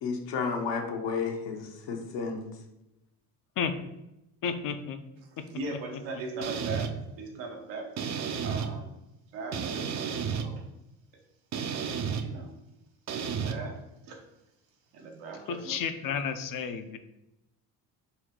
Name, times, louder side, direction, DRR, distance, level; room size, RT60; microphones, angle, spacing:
voice 1, 0.0-2.4, left 5 dB, 70° left, 2 dB, 0.9 m, -32 dB
voice 2, 4.4-5.0 5.4-6.0 15.5-17.0, left 6 dB, 50° left, 9 dB, 0.5 m, -32 dB
voice 3, 5.2-8.0 8.4-9.0 9.3-10.1 10.3-10.6 11.1-11.2 12.2-12.6 13.3-14.2 14.9-15.8, right 3 dB, 80° right, 2 dB, 1.0 m, -39 dB
sound 1, 6.4-6.9 8.0-8.7 9.5-10.5 11.5-12.2 13.1-13.5, right 7 dB, 40° right, 0.5 m, -32 dB
4.0 x 2.2 x 4.4 m, 0.90 s
supercardioid pair, 70°, 45 cm